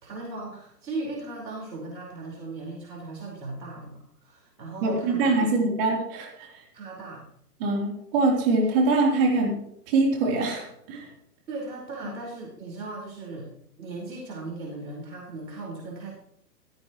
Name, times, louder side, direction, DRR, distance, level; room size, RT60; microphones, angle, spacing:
voice 1, 0.0-5.5 6.7-7.3 11.5-13.5 13.8-16.1, right 3 dB, 85° right, -3 dB, 5.0 m, -37 dB
voice 2, 4.8-6.6 7.6-9.5 9.9-11.1, right 3 dB, 35° right, -1 dB, 3.7 m, -24 dB
16.5 x 14.5 x 3.1 m, 0.70 s
hypercardioid pair, 155°, 49 cm